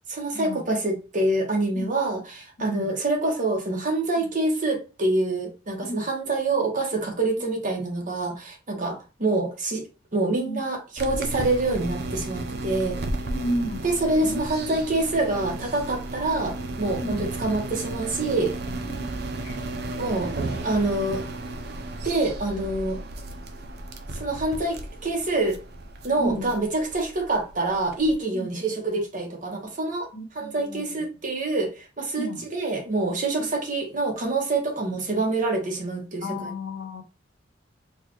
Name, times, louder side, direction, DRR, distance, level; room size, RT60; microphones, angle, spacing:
voice 1, 0.1-9.8 10.1-13.0 13.8-18.5 20.0-20.3 20.6-21.2 22.0-23.0 24.1-25.6 26.0-36.5, right 2 dB, 45° right, 1.1 m, -26 dB
voice 2, 2.6-2.9 4.2-4.3 5.8-6.1 10.3-10.6 13.3-13.9 14.2-14.4 17.0-17.3 18.8-19.1 19.4-19.6 20.7-21.1 26.2-26.5 28.3-28.5 30.1-31.0 32.2-32.4 36.2-37.0, equal, 60° left, 0.9 m, -33 dB
sound 1, 11.0-28.2, right 2 dB, 60° right, 0.6 m, -34 dB
4.6 x 2.3 x 3.0 m
head